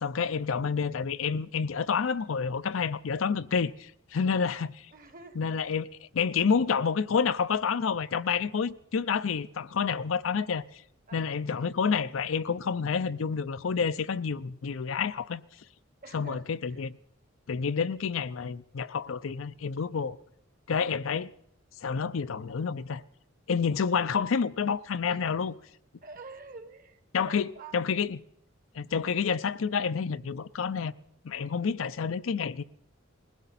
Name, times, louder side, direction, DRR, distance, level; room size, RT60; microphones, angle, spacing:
voice 1, 0.0-4.7 5.4-5.9 6.1-10.6 11.1-15.4 16.1-17.0 17.5-20.2 20.7-21.3 21.8-23.0 23.5-25.5 27.1-28.2 28.8-30.9 31.2-32.6, left 6 dB, 85° left, 0.5 m, -29 dB
voice 2, 4.9-5.8 11.1-11.2 11.5-11.7 16.0-16.8 19.9-20.1 25.1-25.2 26.0-27.0 27.3-27.7 31.6-31.7, right 3 dB, 45° right, 1.2 m, -48 dB
20.5 x 16.5 x 4.1 m
head